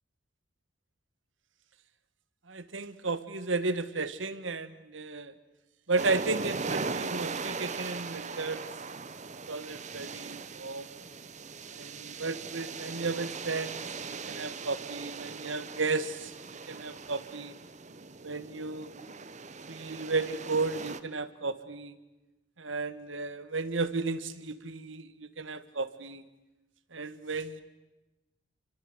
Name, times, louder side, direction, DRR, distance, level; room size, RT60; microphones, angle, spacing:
voice 1, 2.5-5.3 5.9-8.6 9.5-10.9 11.7-13.8 14.3-16.3 16.7-17.5 18.2-18.9 19.7-22.0 22.6-26.2 26.9-27.6, right 3 dB, 80° right, 13 dB, 1.6 m, -33 dB
sound 1, 6.0-21.0, right 4 dB, 40° right, 1.2 m, -39 dB
29.5 x 24.5 x 8.0 m, 1.1 s
head